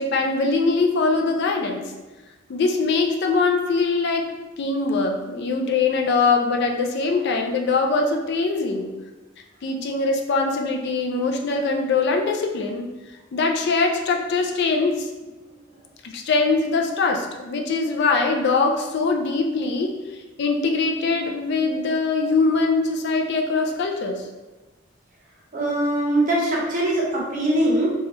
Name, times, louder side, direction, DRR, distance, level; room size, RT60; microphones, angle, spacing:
voice 1, 0.0-1.8 2.5-4.3 4.6-8.9 9.6-12.9 13.3-15.1 16.0-19.9 20.4-24.3, left 3 dB, 55° left, 2 dB, 0.4 m, -22 dB
voice 2, 25.5-27.9, right 1 dB, 40° right, -3 dB, 0.7 m, -22 dB
3.1 x 2.3 x 2.9 m, 1.1 s
head